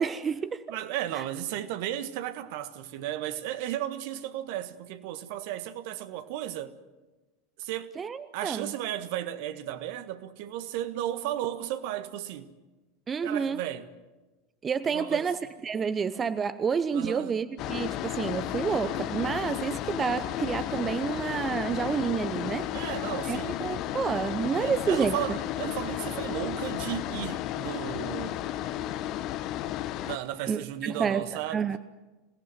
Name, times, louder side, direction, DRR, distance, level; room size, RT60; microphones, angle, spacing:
voice 1, 0.0-0.8 1.1-1.2 8.0-8.7 13.1-13.6 14.6-22.7 23.3-25.4 30.5-31.2 31.5-31.8, right 6 dB, 25° right, 0.9 m, -29 dB
voice 2, 0.7-6.8 7.6-8.0 8.3-12.5 13.2-13.9 14.9-15.3 16.9-17.5 22.7-23.6 24.6-28.4 30.0-31.7, right 12 dB, 60° right, 1.6 m, -34 dB
sound 1, 17.6-30.2, left 13 dB, 45° left, 1.1 m, -33 dB
26.5 x 18.0 x 9.2 m
figure-of-eight pair, 80°, 0 cm